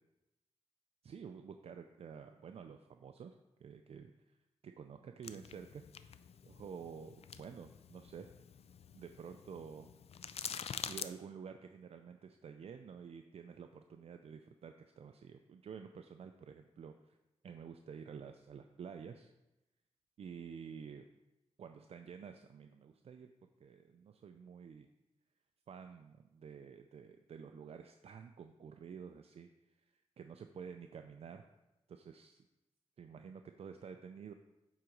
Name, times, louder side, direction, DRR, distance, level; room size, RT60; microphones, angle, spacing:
voice 1, 1.0-3.4 3.6-4.1 4.6-6.1 6.4-8.3 8.9-9.9 10.9-17.2 17.4-19.3 20.2-21.1 21.6-23.3 23.6-24.9 25.7-29.7 30.2-31.4 31.9-32.5 33.0-34.3, right 6 dB, 65° right, 7 dB, 0.4 m, -50 dB
sound 1, 5.2-11.1, left 7 dB, 65° left, 0.4 m, -47 dB
8.4 x 3.9 x 4.6 m, 0.96 s
cardioid pair, 70°, 11 cm